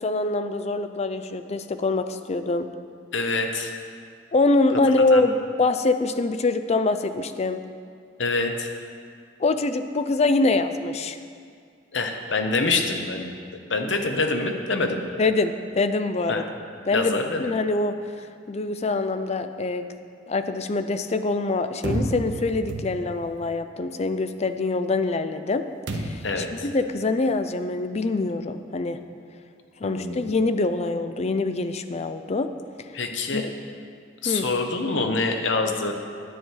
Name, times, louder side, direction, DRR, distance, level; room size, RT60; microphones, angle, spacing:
voice 1, 0.0-2.7 4.3-7.6 9.4-11.2 15.2-16.4 16.9-18.0 18.5-19.8 20.3-25.6 25.9-26.2 26.5-29.0 29.8-32.5 33.3-33.5 34.3-34.5, left 3 dB, 35° left, 9 dB, 0.5 m, -24 dB
voice 2, 3.1-3.7 5.1-5.3 8.2-8.7 11.9-13.3 13.7-15.1 16.3-16.5 16.9-17.5 26.2-26.7 29.8-30.3 32.9-33.4 34.2-35.9, left 3 dB, 85° left, 5 dB, 1.0 m, -26 dB
sound 1, 21.8-23.3 25.9-26.4, right 1 dB, 85° right, 1.0 m, -30 dB
10.0 x 9.1 x 4.6 m, 2.2 s
head